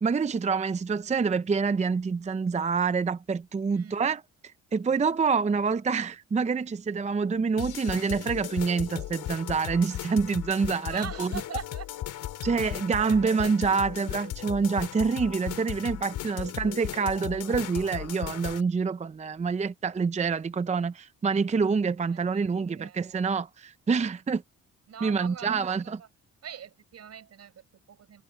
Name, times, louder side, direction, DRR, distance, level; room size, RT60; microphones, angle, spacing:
voice 1, 0.0-11.3 12.4-24.4 25.0-26.0, right 5 dB, 25° right, 0.6 m, -27 dB
sound 1, 7.6-18.6, left 13 dB, 85° left, 3.4 m, -36 dB
voice 2, 10.9-11.9 13.0-13.6 22.1-23.0 24.9-26.1 26.4-28.2, right 8 dB, 55° right, 4.8 m, -43 dB
cardioid pair, 90°, 30 cm